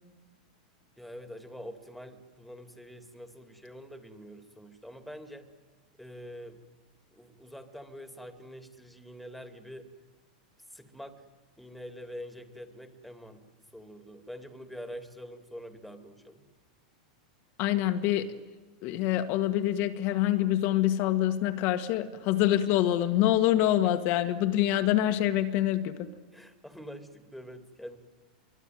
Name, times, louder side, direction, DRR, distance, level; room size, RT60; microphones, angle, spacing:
voice 1, 1.0-5.5 6.0-6.6 7.1-9.9 10.7-11.2 11.6-13.4 13.7-16.4 23.8-23.9 26.3-28.0, equal, ahead, 7 dB, 2.6 m, -45 dB
voice 2, 17.6-18.3 18.8-26.1, left 13 dB, 50° left, 7 dB, 1.7 m, -26 dB
25.0 x 22.5 x 9.4 m, 1.3 s
hypercardioid pair, 115°, 4 cm